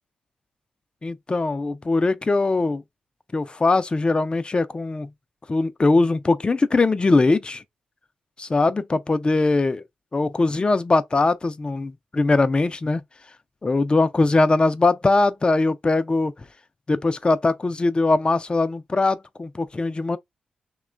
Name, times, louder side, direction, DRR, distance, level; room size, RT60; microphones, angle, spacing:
voice 1, 1.0-2.8 3.3-5.1 5.5-7.6 8.5-9.8 10.1-13.0 13.6-16.3 16.9-20.2, left 3 dB, 30° left, 0.4 m, -21 dB
2.9 x 2.2 x 2.4 m
supercardioid pair, 45°, 3 cm